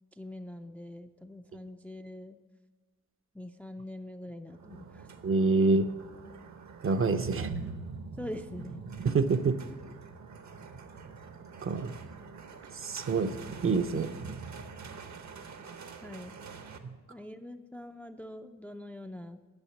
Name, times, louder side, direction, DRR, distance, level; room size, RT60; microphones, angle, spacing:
voice 1, 0.1-2.4 3.3-5.1 8.2-9.1 16.0-16.4 17.1-19.4, left 1 dB, 5° left, 7 dB, 0.3 m, -43 dB
sound 1, 4.5-16.8, right 4 dB, 60° right, 0.8 m, -43 dB
voice 2, 5.2-5.9 6.8-7.5 9.0-9.6 11.6-11.9 12.7-13.4 13.6-14.1, right 3 dB, 45° right, 10 dB, 0.5 m, -26 dB
8.8 x 6.3 x 7.0 m, 1.3 s
wide cardioid pair, 105°, 32 cm